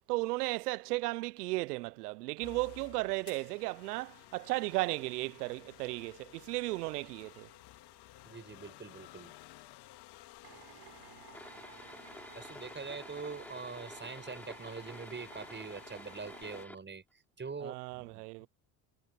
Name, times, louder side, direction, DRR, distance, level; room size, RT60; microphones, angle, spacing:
voice 1, 0.1-7.5 17.6-18.5, right 22 dB, 80° right, 0.6 m, -35 dB
sound 1, 2.4-16.7, left 17 dB, 60° left, 2.1 m, -55 dB
voice 2, 8.2-9.3 12.3-18.5, right 5 dB, 25° right, 6.9 m, -44 dB
Drill, 10.4-16.4, right 12 dB, 55° right, 3.8 m, -55 dB
sound 2, 11.3-16.8, left 1 dB, 5° left, 6.7 m, -51 dB
hypercardioid pair, 70°, 45 cm